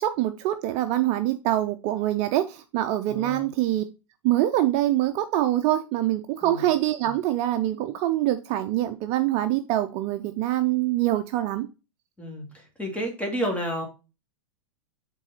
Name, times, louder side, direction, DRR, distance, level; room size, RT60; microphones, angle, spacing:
voice 1, 0.0-3.8 4.2-11.7, right 14 dB, 40° right, 9 dB, 0.5 m, -24 dB
voice 2, 3.1-3.5 6.4-6.6 12.2-12.5 12.8-13.8, equal, 5° left, 1 dB, 2.1 m, -30 dB
6.3 x 3.9 x 4.0 m, 0.29 s
hypercardioid pair, 120°, 17 cm